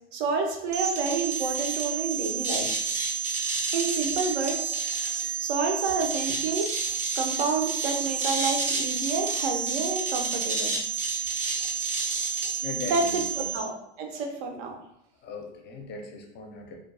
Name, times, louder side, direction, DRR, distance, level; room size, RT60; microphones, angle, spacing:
voice 1, 0.1-2.7 3.7-6.7 7.2-10.8 12.9-14.7, right 4 dB, 60° right, 3 dB, 0.7 m, -29 dB
sound 1, 0.7-13.6, right 5 dB, 20° right, 0.5 m, -29 dB
voice 2, 12.6-13.5 15.2-16.8, left 4 dB, 30° left, 2 dB, 0.5 m, -39 dB
2.4 x 2.2 x 2.6 m, 0.79 s
hypercardioid pair, 105°, 36 cm